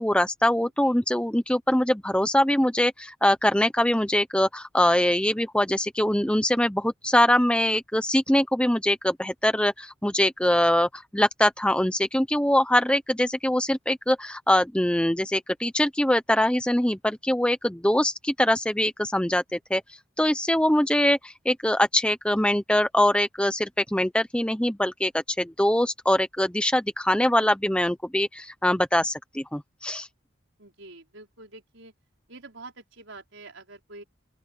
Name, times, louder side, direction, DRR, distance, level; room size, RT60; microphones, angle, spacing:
voice 1, 0.0-19.8 20.2-30.1, left 1 dB, 5° left, 0.8 m, -23 dB
voice 2, 30.6-31.9 32.3-34.0, right 2 dB, 70° right, 5.2 m, -46 dB
open air
head